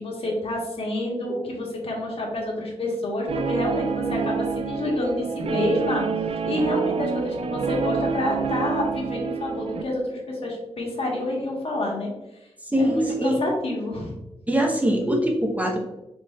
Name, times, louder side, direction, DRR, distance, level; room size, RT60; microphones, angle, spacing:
voice 1, 0.0-6.1 6.4-12.1 12.8-14.1, left 1 dB, 60° left, -2 dB, 1.3 m, -28 dB
Guitar, 3.3-9.8, right 6 dB, 65° right, 0.4 m, -27 dB
voice 2, 12.7-13.4 14.5-15.8, equal, 15° right, 1 dB, 0.9 m, -22 dB
4.4 x 4.3 x 2.3 m, 0.96 s
wide cardioid pair, 115°, 11 cm